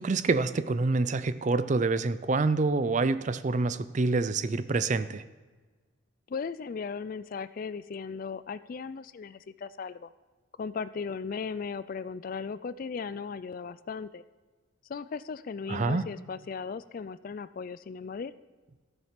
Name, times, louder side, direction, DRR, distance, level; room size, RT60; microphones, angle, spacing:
voice 1, 0.0-5.2 15.7-16.1, right 3 dB, 35° right, 13 dB, 0.4 m, -27 dB
voice 2, 6.3-10.1 10.6-14.2 14.9-18.3, left 5 dB, 45° left, 16 dB, 0.3 m, -37 dB
14.5 x 7.2 x 5.8 m, 1.3 s
head